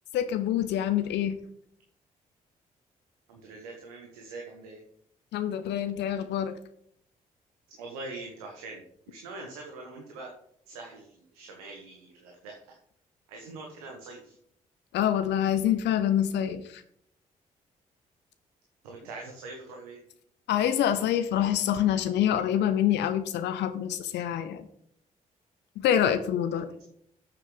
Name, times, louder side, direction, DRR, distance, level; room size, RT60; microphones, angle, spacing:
voice 1, 0.1-1.4 5.3-6.6 14.9-16.8 20.5-24.6 25.8-26.7, left 10 dB, 70° left, 10 dB, 0.8 m, -26 dB
voice 2, 3.3-4.8 7.7-10.3 10.7-12.8 13.3-14.4 18.8-20.0 26.6-26.7, right 3 dB, 85° right, 1 dB, 1.4 m, -43 dB
13.0 x 7.2 x 3.9 m, 0.69 s
hypercardioid pair, 45°, 19 cm